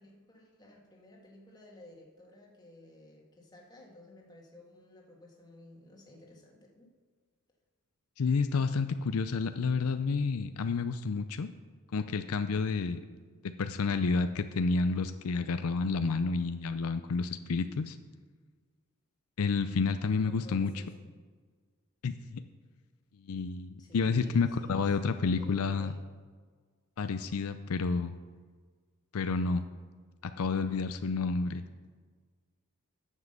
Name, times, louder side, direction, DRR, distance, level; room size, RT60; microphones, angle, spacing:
voice 1, 0.0-6.9 20.2-21.1 23.8-26.0, left 1 dB, 20° left, -1 dB, 1.8 m, -54 dB
voice 2, 8.2-11.5 11.9-13.0 13.6-18.0 19.4-20.7 22.0-22.4 23.2-25.9 27.0-28.2 29.1-29.6 30.4-31.6, left 4 dB, 75° left, 10 dB, 0.5 m, -30 dB
9.6 x 7.4 x 6.7 m, 1.5 s
head